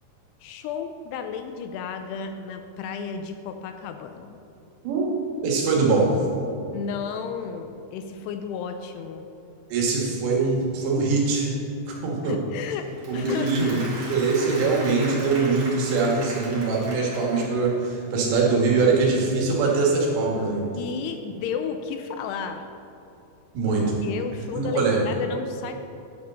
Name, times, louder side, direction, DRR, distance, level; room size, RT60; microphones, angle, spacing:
voice 1, 0.4-4.4 6.7-9.3 12.2-13.7 20.8-22.7 23.7-25.7, left 6 dB, 80° left, 7 dB, 2.5 m, -33 dB
voice 2, 5.4-6.1 9.7-11.5 11.9-12.4 13.1-13.8 14.1-20.6 23.5-24.0 24.5-25.0, right 4 dB, 80° right, -3 dB, 4.0 m, -22 dB
Applause, 12.9-17.9, right 2 dB, 45° right, 2.9 m, -38 dB
10.5 x 5.2 x 7.4 m, 2.7 s
omnidirectional pair, 5.0 m